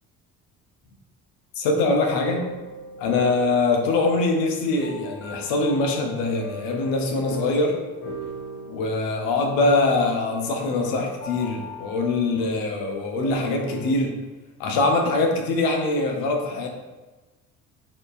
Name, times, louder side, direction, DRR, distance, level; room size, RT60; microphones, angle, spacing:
voice 1, 1.6-2.4 3.0-7.8 8.7-14.1 14.6-16.7, left 3 dB, 55° left, 2 dB, 0.9 m, -23 dB
sound 1, 2.3-13.9, equal, 30° left, 1.4 m, -39 dB
4.2 x 3.1 x 2.5 m, 1.2 s
figure-of-eight pair, 55°, 43 cm